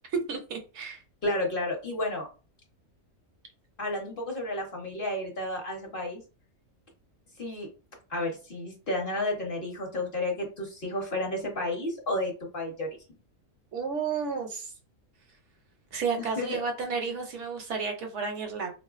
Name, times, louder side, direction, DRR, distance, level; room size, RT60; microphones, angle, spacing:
voice 1, 0.1-1.0 13.7-14.7 15.9-18.7, right 5 dB, 70° right, 0.9 m, -32 dB
voice 2, 1.2-2.3 3.8-6.2 7.4-7.7 8.1-12.9 16.2-16.6, left 1 dB, 50° left, 0.8 m, -31 dB
3.5 x 2.4 x 2.3 m
omnidirectional pair, 1.4 m